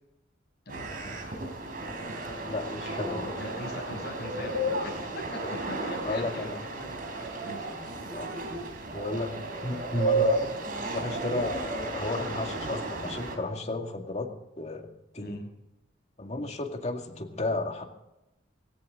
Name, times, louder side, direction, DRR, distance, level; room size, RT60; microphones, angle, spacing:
voice 1, 0.7-1.2 3.4-5.4 5.7-8.0 15.2-15.5, left 1 dB, 55° left, 0 dB, 6.2 m, -41 dB
sound 1, 0.7-13.4, right 2 dB, 50° right, 3.7 m, -33 dB
voice 2, 2.5-3.4 5.4-5.5 6.0-6.6 8.1-8.3 8.9-9.3 9.6-10.6 10.9-14.3 14.6-15.4 16.2-17.9, left 2 dB, 35° left, 3 dB, 2.2 m, -33 dB
18.5 x 17.0 x 3.9 m, 0.90 s
head